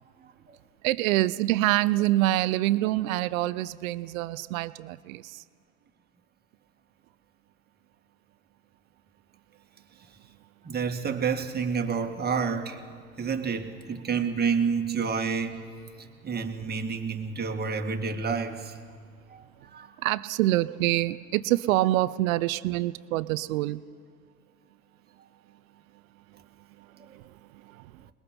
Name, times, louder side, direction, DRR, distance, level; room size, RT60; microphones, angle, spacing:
voice 1, 0.2-0.6 10.6-12.8 13.2-15.6 16.0-18.8 19.3-19.4 19.7-19.9, right 5 dB, 20° right, 4 dB, 2.0 m, -29 dB
voice 2, 0.8-5.2 20.0-23.8, right 16 dB, 65° right, 16 dB, 0.8 m, -25 dB
27.5 x 21.0 x 4.5 m, 2.1 s
hypercardioid pair, 85°, 43 cm